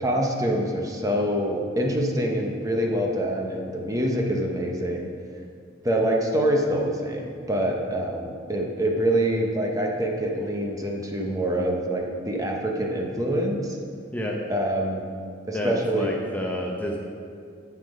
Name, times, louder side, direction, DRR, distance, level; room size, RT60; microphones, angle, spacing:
voice 1, 0.0-5.1 5.8-13.8 14.5-15.1 15.5-16.1, right 1 dB, 20° right, 0 dB, 0.9 m, -25 dB
voice 2, 15.5-17.0, equal, 10° left, -1 dB, 0.7 m, -29 dB
10.0 x 6.7 x 5.2 m, 2.3 s
head